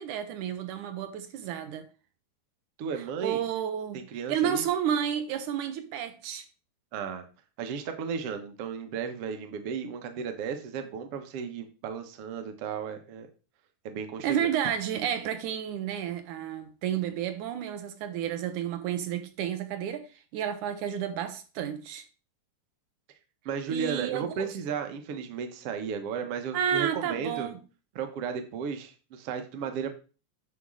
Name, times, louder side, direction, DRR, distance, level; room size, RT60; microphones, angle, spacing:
voice 1, 0.0-1.9 3.2-6.4 14.2-22.1 23.7-24.5 26.5-27.6, right 9 dB, 75° right, 2.2 m, -31 dB
voice 2, 2.8-3.4 3.9-4.6 6.9-7.3 7.6-13.3 13.8-14.5 23.4-27.5 27.9-29.9, right 6 dB, 60° right, 1.7 m, -34 dB
9.6 x 3.6 x 6.3 m
omnidirectional pair, 3.6 m